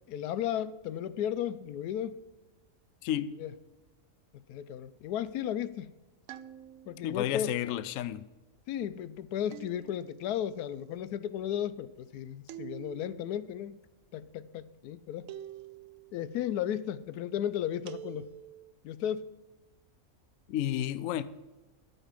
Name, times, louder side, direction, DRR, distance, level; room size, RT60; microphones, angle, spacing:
voice 1, 0.1-2.2 3.4-3.5 4.5-5.9 6.9-7.8 8.7-13.8 14.1-15.3 16.1-18.3 18.8-19.4, left 10 dB, 90° left, 1.1 m, -34 dB
voice 2, 3.0-3.4 7.0-8.3 20.5-21.2, left 12 dB, 70° left, 0.9 m, -31 dB
sound 1, 6.3-7.1 9.5-10.3 12.5-13.3 15.3-16.1 17.9-18.7, right 11 dB, 65° right, 0.9 m, -46 dB
12.5 x 5.4 x 7.4 m
omnidirectional pair, 1.6 m